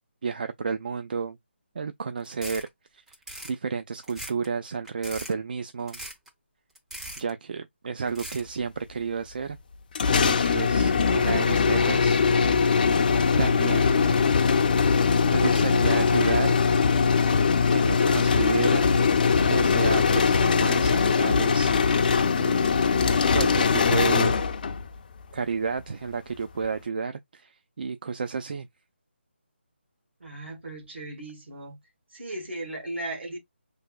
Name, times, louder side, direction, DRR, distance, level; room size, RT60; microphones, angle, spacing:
voice 1, 0.2-1.4 1.7-2.7 2.9-3.0 3.4-6.0 7.2-9.6 10.2-12.7 13.4-14.2 15.3-16.6 17.7-18.9 19.5-22.6 23.3-24.4 25.3-28.7, right 5 dB, 50° right, 0.4 m, -31 dB
sound 1, 2.2-2.7 3.1-3.5 4.0-4.5 4.8-5.3 5.9-6.3 6.8-7.3 8.1-8.5, right 1 dB, 5° right, 0.5 m, -39 dB
sound 2, 10.0-24.9, left 5 dB, 45° left, 0.5 m, -21 dB
sound 3, 12.8-22.1, left 2 dB, 65° left, 1.0 m, -32 dB
voice 2, 30.2-31.8 32.1-33.4, right 1 dB, 70° right, 1.7 m, -36 dB
5.0 x 3.4 x 2.3 m
figure-of-eight pair, 160°, 6 cm